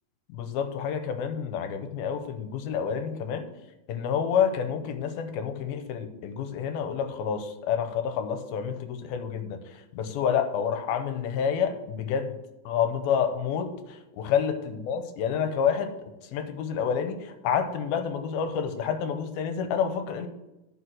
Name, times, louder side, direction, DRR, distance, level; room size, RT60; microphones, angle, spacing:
voice 1, 0.3-3.5 3.9-12.3 12.7-15.9 16.3-20.3, left 7 dB, 75° left, 8 dB, 2.6 m, -28 dB
11.0 x 5.8 x 6.3 m, 0.98 s
omnidirectional pair, 4.6 m